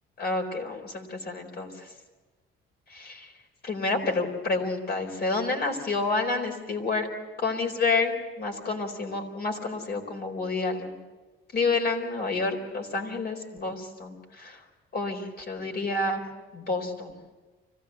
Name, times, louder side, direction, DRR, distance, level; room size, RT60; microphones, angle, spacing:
voice 1, 0.2-1.9 2.9-3.3 3.6-7.1 7.4-11.0 11.5-14.6 14.9-16.2 16.5-17.1, left 3 dB, 50° left, 4 dB, 4.4 m, -29 dB
25.0 x 16.5 x 8.0 m, 1.2 s
cardioid pair, 100°, 21 cm